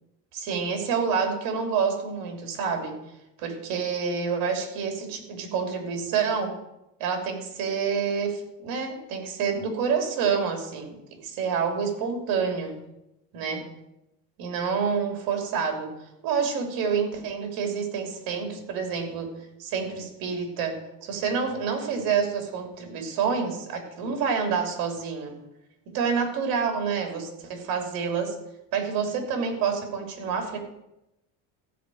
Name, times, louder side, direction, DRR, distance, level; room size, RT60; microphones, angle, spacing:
voice 1, 0.3-3.0 3.4-6.5 7.0-12.7 13.3-13.6 14.4-15.9 16.2-19.3 19.6-25.4 25.9-28.3 28.7-30.6, right 6 dB, 60° right, 4 dB, 3.1 m, -28 dB
15.0 x 5.1 x 7.8 m, 0.90 s
cardioid pair, 160°, 39 cm